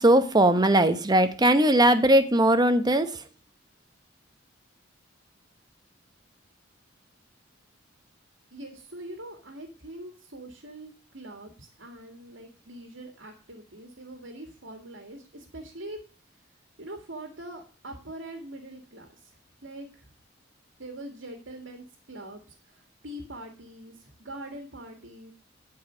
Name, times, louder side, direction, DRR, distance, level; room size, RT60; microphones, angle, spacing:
voice 1, 0.0-3.2, right 1 dB, 20° right, 10 dB, 0.9 m, -20 dB
voice 2, 8.5-16.0 16.8-19.2 19.6-20.1 20.8-25.3, right 1 dB, 80° right, 3 dB, 2.0 m, -43 dB
12.0 x 4.8 x 6.2 m, 0.37 s
head